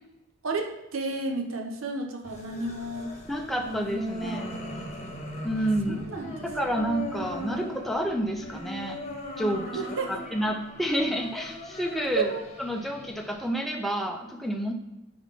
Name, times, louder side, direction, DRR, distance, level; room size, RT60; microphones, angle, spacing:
voice 1, 0.4-3.1 4.2-4.4 4.7-4.9 5.9-6.4 9.7-10.1 12.1-12.4, right 3 dB, 70° right, 3 dB, 0.8 m, -32 dB
sound 1, 2.2-13.5, equal, 30° left, 1.0 m, -38 dB
voice 2, 3.3-4.4 5.4-6.0 6.4-9.0 9.4-9.7 10.3-12.3 12.6-14.7, equal, ahead, 2 dB, 0.5 m, -29 dB
4.6 x 4.0 x 5.7 m, 0.99 s
head